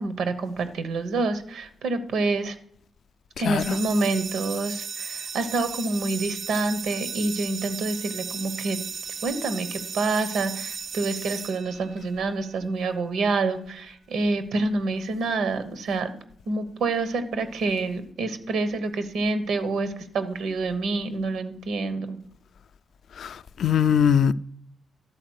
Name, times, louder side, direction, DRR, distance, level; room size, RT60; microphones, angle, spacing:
voice 1, 0.0-2.5 3.4-8.8 9.2-16.1 16.5-22.2, right 3 dB, 90° right, 1.1 m, -27 dB
sound 1, 3.6-12.3, right 6 dB, 50° right, 0.3 m, -35 dB
voice 2, 23.2-24.3, left 8 dB, 65° left, 0.3 m, -21 dB
12.0 x 4.3 x 6.3 m
wide cardioid pair, 145°, 0 cm